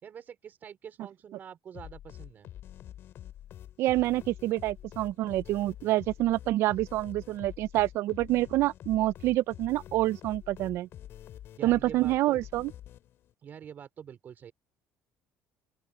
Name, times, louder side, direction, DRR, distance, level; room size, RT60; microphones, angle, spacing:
voice 1, 0.0-2.5 11.6-12.4 13.4-14.5, right 8 dB, 40° right, 3.8 m, -46 dB
sound 1, 1.7-13.3, left 11 dB, 55° left, 7.1 m, -47 dB
voice 2, 3.8-10.9 11.6-12.7, right 16 dB, 60° right, 0.5 m, -27 dB
open air
cardioid pair, 130°, 5 cm